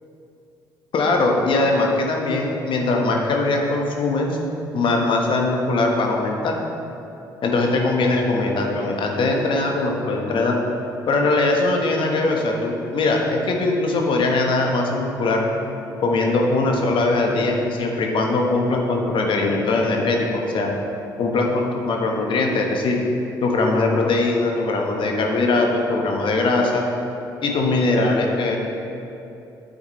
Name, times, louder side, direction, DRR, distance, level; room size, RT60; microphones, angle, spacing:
voice 1, 0.9-4.4 4.7-6.5 7.4-10.6 11.1-15.5 16.0-20.7 21.2-23.0 23.4-26.8 27.4-28.6, left 2 dB, 50° left, 1 dB, 1.3 m, -21 dB
9.2 x 7.8 x 3.2 m, 2.8 s
hypercardioid pair, 50°, 11 cm